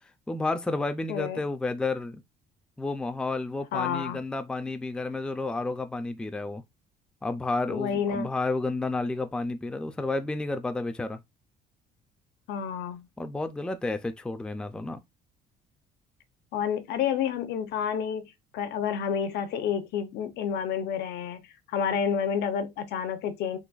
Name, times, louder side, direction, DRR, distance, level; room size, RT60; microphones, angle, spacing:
voice 1, 0.3-2.2 2.8-6.6 7.2-11.2 13.2-15.0, left 2 dB, 5° left, 0.3 m, -31 dB
voice 2, 1.1-1.4 3.7-4.2 7.7-8.3 12.5-13.1 16.5-21.4 21.7-23.6, left 7 dB, 75° left, 0.6 m, -29 dB
3.9 x 2.5 x 2.3 m
cardioid pair, 110°, 17 cm